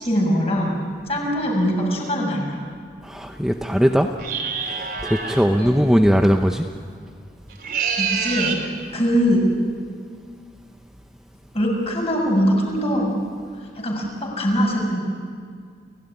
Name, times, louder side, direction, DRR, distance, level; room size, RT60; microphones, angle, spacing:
voice 1, 0.0-0.8 1.1-2.6 5.6-5.8 8.0-8.6 8.9-9.4 11.5-13.2 13.7-15.0, equal, 35° left, -1 dB, 6.7 m, -22 dB
voice 2, 3.0-4.1 4.7-6.7, equal, 5° right, 4 dB, 0.8 m, -19 dB
sound 1, 4.2-5.4 7.5-8.7, right 6 dB, 55° right, 3.7 m, -26 dB
30.0 x 17.5 x 10.0 m, 2.1 s
head